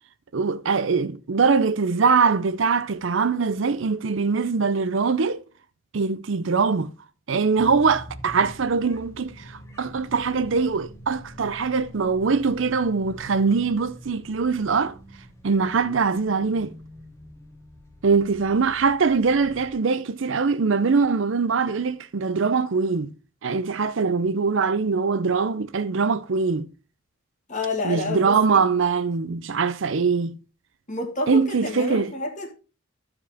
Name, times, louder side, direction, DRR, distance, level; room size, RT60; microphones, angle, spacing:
voice 1, 0.3-5.4 5.9-6.9 7.3-14.9 15.4-16.7 18.0-23.1 23.4-26.7 27.8-30.3 31.3-32.1, right 5 dB, 65° right, 0.6 m, -22 dB
sound 1, 7.6-19.7, equal, 15° left, 1.1 m, -45 dB
voice 2, 27.5-28.7 30.9-32.5, left 3 dB, 40° left, 1.8 m, -29 dB
14.0 x 4.9 x 3.5 m
head